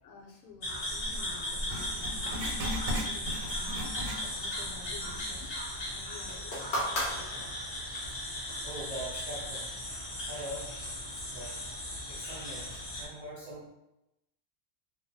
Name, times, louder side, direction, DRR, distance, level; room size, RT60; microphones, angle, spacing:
voice 1, 0.0-3.9 4.4-5.5 5.9-7.5, left 5 dB, 85° left, -1 dB, 1.1 m, -52 dB
sound 1, 0.6-13.1, left 1 dB, 70° left, 0.3 m, -37 dB
Writing, 1.7-4.7 5.0-5.1 5.8-5.9, equal, 90° right, 1.1 m, -37 dB
sound 2, 6.3-8.0 9.0-9.1, equal, 55° left, 0.8 m, -35 dB
voice 2, 8.6-9.6 10.3-10.8 11.3-11.6 12.1-13.7, right 1 dB, 60° right, -9 dB, 0.4 m, -42 dB
2.3 x 2.2 x 2.6 m, 0.88 s
omnidirectional pair, 1.5 m